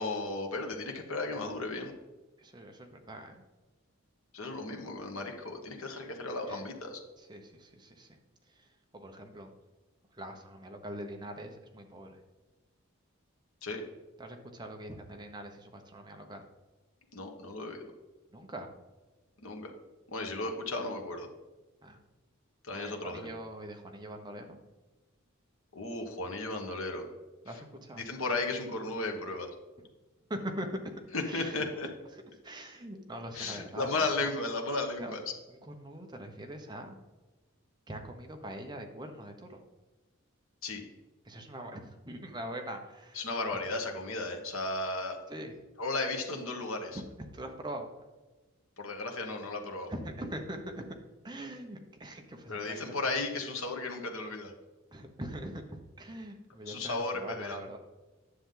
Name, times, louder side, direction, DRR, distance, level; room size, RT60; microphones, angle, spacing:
voice 1, 0.0-1.9 4.3-7.0 13.6-13.8 17.1-17.9 19.4-19.7 20.1-21.3 22.6-23.3 25.7-27.1 28.0-29.5 31.1-31.9 33.3-35.2 40.6-40.8 43.1-45.2 45.8-47.0 48.8-49.9 52.5-54.5 56.7-57.6, left 2 dB, 75° left, 3 dB, 1.5 m, -35 dB
voice 2, 2.4-3.4 6.5-6.6 7.2-8.2 8.5-9.5 10.1-12.2 14.2-16.4 18.3-18.7 20.4-20.5 21.8-22.0 22.7-24.6 27.4-28.1 29.8-29.9 30.3-30.7 31.3-31.5 32.1-34.3 35.0-35.1 35.5-37.0 37.9-39.6 41.2-43.2 45.3-45.6 46.9-47.9 49.9-50.9 51.2-53.2 54.9-57.8, right 1 dB, 20° right, 3 dB, 1.0 m, -43 dB
9.9 x 7.1 x 3.9 m, 1.2 s
head